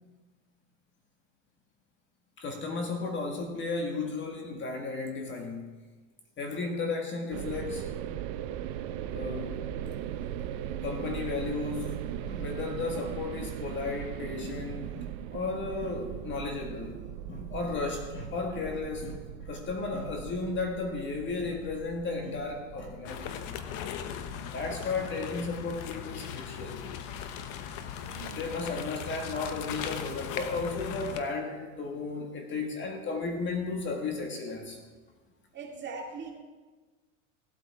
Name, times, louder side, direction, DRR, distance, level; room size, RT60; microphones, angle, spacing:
voice 1, 2.4-5.7 6.4-7.9 9.1-9.6 10.8-17.0 17.3-23.5 24.4-27.0 28.2-34.8, left 3 dB, 30° left, 3 dB, 1.7 m, -34 dB
sound 1, 7.3-24.9, right 10 dB, 55° right, 0.8 m, -39 dB
sound 2, 23.1-31.2, left 8 dB, 50° left, 1.1 m, -38 dB
voice 2, 28.0-28.5 35.5-36.3, right 4 dB, 25° right, -1 dB, 2.5 m, -41 dB
16.5 x 8.3 x 4.7 m, 1.3 s
supercardioid pair, 125°, 39 cm